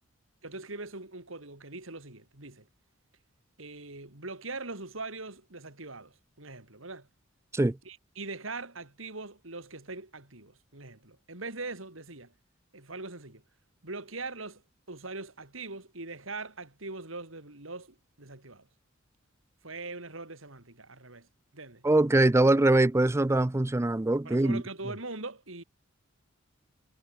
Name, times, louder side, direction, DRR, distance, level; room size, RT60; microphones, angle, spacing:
voice 1, 0.4-2.7 3.6-7.1 7.8-12.3 12.7-13.4 13.8-14.6 14.9-18.7 19.6-21.3 21.5-21.8 24.2-25.6, right 3 dB, 70° right, 4.1 m, -41 dB
voice 2, 21.8-24.6, right 2 dB, 15° right, 0.4 m, -23 dB
head